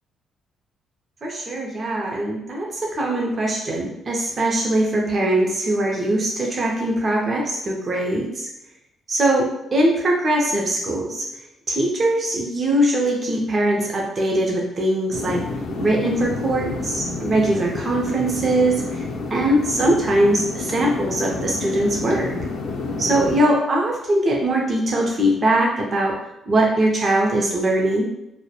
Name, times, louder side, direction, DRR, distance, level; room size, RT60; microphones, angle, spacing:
voice 1, 1.2-8.5 9.1-11.3 11.7-15.5 15.8-22.3 23.0-26.2 26.5-28.1, right 1 dB, 40° right, -1 dB, 0.5 m, -21 dB
sound 1, 15.1-23.4, left 3 dB, 80° left, 0.4 m, -29 dB
2.1 x 2.1 x 2.8 m, 0.85 s
cardioid pair, 90°, 0 cm